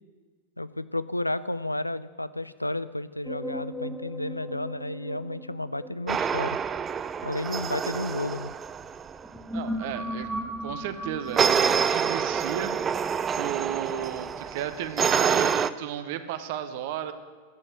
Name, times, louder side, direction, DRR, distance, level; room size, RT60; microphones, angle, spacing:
voice 1, 0.6-6.6 7.2-8.5, left 1 dB, 85° left, 16 dB, 0.4 m, -32 dB
sound 1, 3.2-8.5 9.1-14.1, equal, 5° right, 0.9 m, -38 dB
sound 2, 6.1-9.3 11.4-15.7, right 7 dB, 20° right, 0.4 m, -27 dB
voice 2, 9.5-10.3 10.6-17.1, right 10 dB, 50° right, 10 dB, 0.7 m, -34 dB
10.5 x 7.3 x 9.1 m, 1.5 s
figure-of-eight pair, 90°, 0 cm